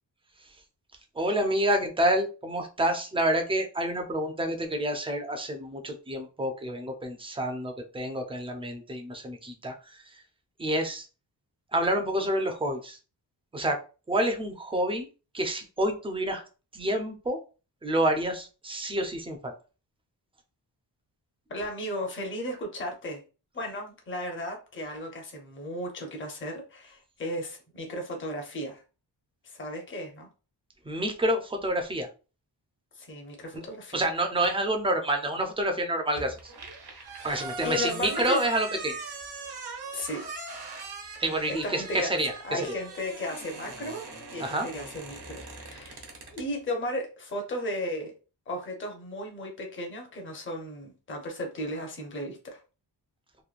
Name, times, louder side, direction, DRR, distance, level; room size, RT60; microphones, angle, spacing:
voice 1, 1.2-10.0 10.6-11.1 11.7-13.0 13.5-13.8 14.1-15.1 15.3-16.4 16.7-17.4 17.8-19.5 30.9-32.1 33.9-36.5 37.2-38.9 41.2-42.6 44.4-44.7, right 1 dB, 15° right, 4 dB, 0.4 m, -28 dB
voice 2, 21.5-23.2 23.5-28.8 29.4-30.3 33.0-34.0 37.2-38.4 39.9-40.3 41.5-42.2 42.4-44.0 44.3-48.1 48.5-52.6, left 1 dB, 30° left, 1 dB, 0.7 m, -35 dB
sound 1, 36.2-46.5, right 3 dB, 65° right, 0.8 m, -41 dB
3.0 x 2.2 x 2.4 m, 0.33 s
wide cardioid pair, 155°, 42 cm